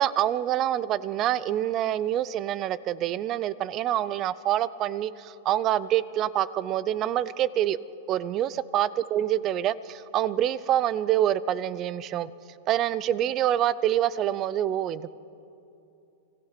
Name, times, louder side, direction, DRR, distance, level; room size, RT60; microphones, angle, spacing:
voice 1, 0.0-7.8 8.1-12.3 12.7-15.1, right 12 dB, 25° right, 19 dB, 0.5 m, -26 dB
29.5 x 19.5 x 5.9 m, 2.8 s
supercardioid pair, 175°, 0 cm